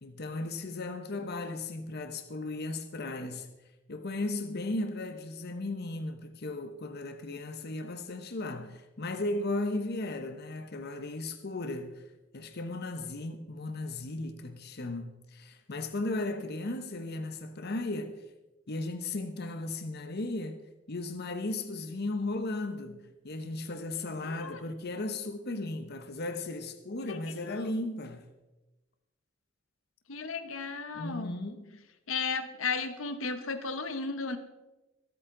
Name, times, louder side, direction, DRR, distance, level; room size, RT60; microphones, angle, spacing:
voice 1, 0.0-3.5 3.9-12.1 12.3-18.2 18.7-20.6 20.9-28.2 30.9-31.8, left 2 dB, 55° left, 0.9 m, -36 dB
voice 2, 24.2-24.6 27.1-27.2 27.5-27.7 30.1-31.3 32.1-34.4, left 4 dB, 80° left, 1.1 m, -34 dB
24.5 x 8.8 x 3.8 m
head